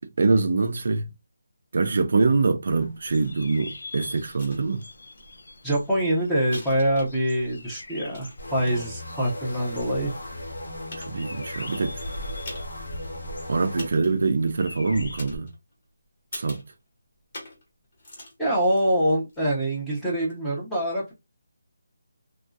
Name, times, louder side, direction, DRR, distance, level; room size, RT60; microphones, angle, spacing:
voice 1, 0.2-1.1 1.7-4.8 11.1-12.0 13.5-15.5 16.3-16.6, right 3 dB, 45° right, 0.4 m, -24 dB
sound 1, 2.8-15.4, left 1 dB, 55° left, 0.6 m, -42 dB
sound 2, 4.0-4.6 5.2-5.3 5.5-7.4 7.8-9.0 9.7-9.8 10.4-10.5 10.9-11.5 12.4-12.8 13.1-13.2 13.8-14.3 15.2-15.8 16.3-16.7 17.3-17.7 17.9-19.4 20.2-20.3, left 1 dB, 35° left, 1.3 m, -43 dB
voice 2, 5.6-10.1 18.4-21.1, right 1 dB, 5° left, 0.7 m, -25 dB
sound 3, 8.4-13.9, left 1 dB, 75° left, 1.2 m, -37 dB
3.1 x 2.6 x 2.3 m
hypercardioid pair, 175°, 0 cm